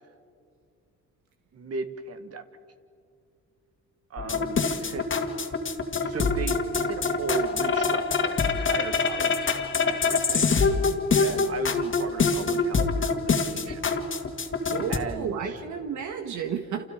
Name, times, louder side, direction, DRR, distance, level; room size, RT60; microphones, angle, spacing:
voice 1, 1.5-2.4 4.1-5.1 6.0-9.5 9.8-10.5 11.2-13.8 14.9-15.6, right 5 dB, 50° right, 9 dB, 1.6 m, -36 dB
sound 1, 4.2-15.0, left 4 dB, 40° left, 2.1 m, -25 dB
voice 2, 14.7-16.9, right 7 dB, 70° right, 5 dB, 1.7 m, -32 dB
29.0 x 27.5 x 5.1 m, 2.4 s
cardioid pair, 90°, 30 cm